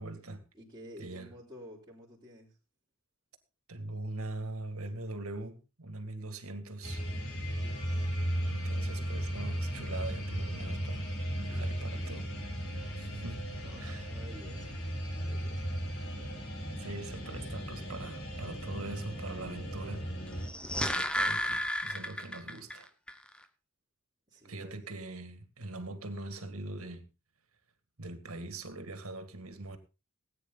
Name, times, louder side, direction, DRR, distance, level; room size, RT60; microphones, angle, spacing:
voice 1, 0.0-0.4 1.0-1.3 3.7-7.0 8.5-11.1 11.4-12.3 13.0-13.4 13.8-14.1 16.8-20.0 20.7-22.9 24.4-27.1 28.0-29.8, right 2 dB, 75° right, 2.2 m, -42 dB
voice 2, 0.5-2.5 7.6-8.1 11.4-12.8 13.6-14.7 15.1-16.4 24.3-24.9, equal, 20° right, 3.9 m, -52 dB
sound 1, 6.8-20.5, equal, 70° left, 5.1 m, -36 dB
sound 2, 20.3-22.8 23.1-23.2, left 1 dB, 5° left, 0.9 m, -32 dB
18.0 x 9.5 x 4.0 m
head